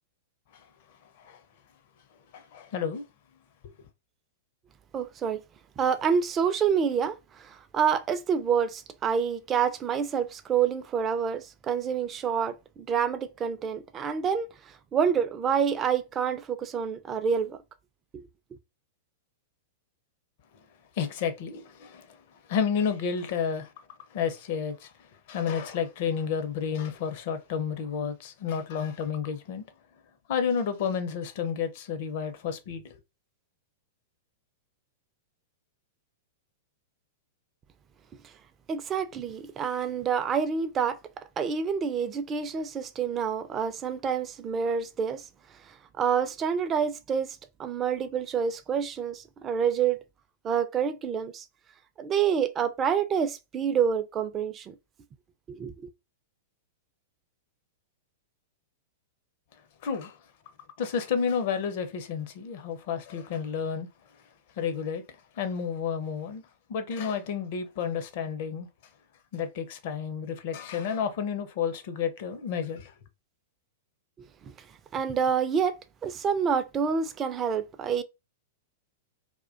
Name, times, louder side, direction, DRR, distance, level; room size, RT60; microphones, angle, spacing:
voice 1, 0.5-1.4 2.3-3.0 3.6-3.7 20.9-29.6 30.3-33.0 59.8-60.2 60.8-63.9 64.5-65.0 65.3-66.4 66.7-68.7 69.3-72.9, left 7 dB, 55° left, 0.5 m, -31 dB
voice 2, 4.9-5.4 5.8-17.6 18.1-18.3 38.7-45.3 45.7-50.0 50.4-51.4 52.0-54.8 55.5-55.9 74.4-74.5 74.9-78.0, right 7 dB, 25° right, 0.3 m, -28 dB
2.4 x 2.1 x 2.4 m
hypercardioid pair, 105°, 0 cm